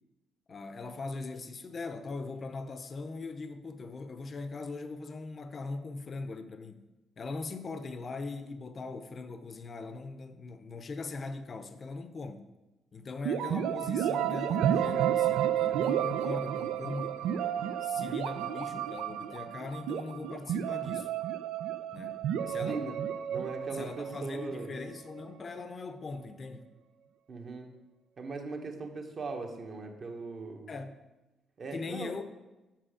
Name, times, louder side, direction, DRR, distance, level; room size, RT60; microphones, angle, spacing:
voice 1, 0.5-12.5 12.9-17.2 17.8-21.1 21.9-22.8 23.7-26.7 30.7-31.0 31.7-32.2, left 3 dB, 40° left, 0.6 m, -40 dB
sound 1, 13.2-25.0, right 10 dB, 90° right, 0.4 m, -31 dB
voice 2, 23.3-24.7 27.3-27.7 28.2-30.7 31.6-32.1, right 3 dB, 50° right, 1.3 m, -39 dB
7.5 x 5.5 x 5.0 m
cardioid pair, 90°, 0 cm